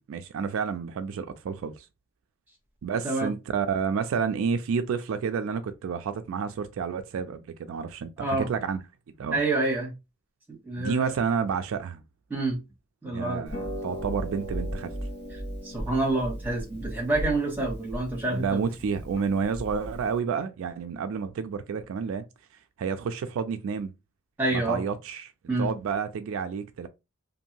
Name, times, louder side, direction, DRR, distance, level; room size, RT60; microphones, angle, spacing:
voice 1, 0.0-1.9 2.8-8.8 9.2-9.4 10.7-12.0 13.1-15.0 18.3-22.2 22.8-23.9 24.5-25.3 25.6-26.9, right 6 dB, 70° right, 0.3 m, -30 dB
voice 2, 9.3-9.9 10.6-11.1 12.3-12.6 13.0-13.5 15.6-18.6 24.4-24.8 25.5-25.7, right 2 dB, 10° right, 1.2 m, -27 dB
Harp, 13.5-20.2, equal, 50° left, 0.7 m, -36 dB
2.6 x 2.5 x 2.8 m
head